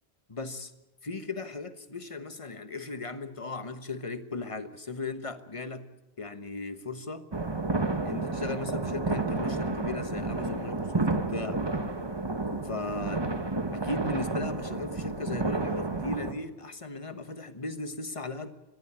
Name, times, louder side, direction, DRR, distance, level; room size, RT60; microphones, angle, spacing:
voice 1, 0.3-0.7 1.0-5.9 6.2-7.3 8.0-11.6 12.6-13.3 13.7-18.5, left 3 dB, 30° left, 10 dB, 1.3 m, -37 dB
sound 1, 7.3-16.3, right 3 dB, 25° right, 1.2 m, -31 dB
23.0 x 14.5 x 8.8 m, 1.0 s
omnidirectional pair, 1.1 m